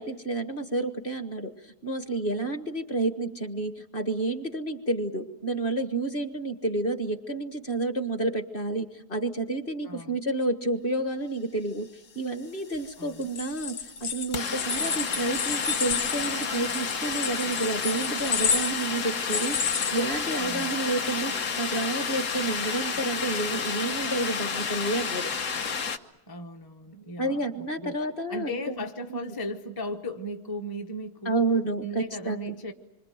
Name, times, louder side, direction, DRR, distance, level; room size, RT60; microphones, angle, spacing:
voice 1, 0.0-11.9 12.1-25.3 27.2-28.7 29.1-29.2 31.2-32.5, right 2 dB, 35° left, 1.5 m, -30 dB
voice 2, 9.8-10.2 13.0-13.3 20.4-20.7 26.3-28.0 28.3-31.4 31.8-32.7, equal, 15° left, 0.8 m, -36 dB
sound 1, 12.3-12.4 12.5-26.0, left 5 dB, 50° left, 1.3 m, -31 dB
sound 2, 13.2-20.7, left 6 dB, 75° left, 1.7 m, -31 dB
27.0 x 25.0 x 7.6 m
omnidirectional pair, 1.9 m